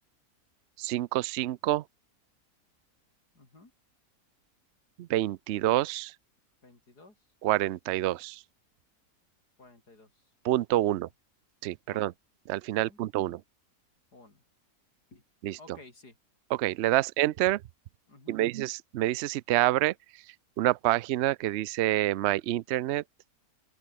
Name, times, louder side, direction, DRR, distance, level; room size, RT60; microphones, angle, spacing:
voice 1, 0.8-1.8 5.0-6.1 7.4-8.4 10.4-11.1 11.6-12.1 12.5-13.4 15.4-15.8 16.5-17.6 18.3-19.9 20.6-23.0, right 15 dB, 75° right, 0.6 m, -27 dB
voice 2, 3.3-3.7 6.6-7.2 9.6-10.1 10.9-11.0 11.9-12.1 12.8-13.4 14.1-14.4 15.1-15.2 15.6-16.2 18.1-18.4, left 2 dB, 85° left, 6.0 m, -54 dB
open air
omnidirectional pair, 1.7 m